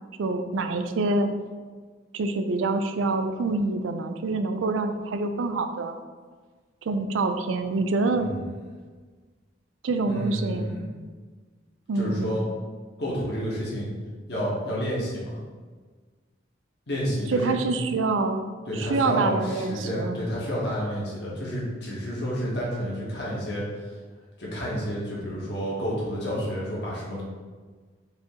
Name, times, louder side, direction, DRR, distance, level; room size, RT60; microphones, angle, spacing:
voice 1, 0.2-1.3 2.1-6.0 6.9-8.3 9.8-10.7 11.9-12.3 17.3-18.4 18.7-20.2, right 3 dB, 85° right, 8 dB, 0.4 m, -26 dB
voice 2, 10.0-10.9 11.9-12.5 13.0-13.9 14.3-15.4 16.9-17.9 18.7-23.7 24.4-27.2, equal, 55° left, -5 dB, 1.4 m, -30 dB
5.0 x 2.8 x 3.7 m, 1.5 s
head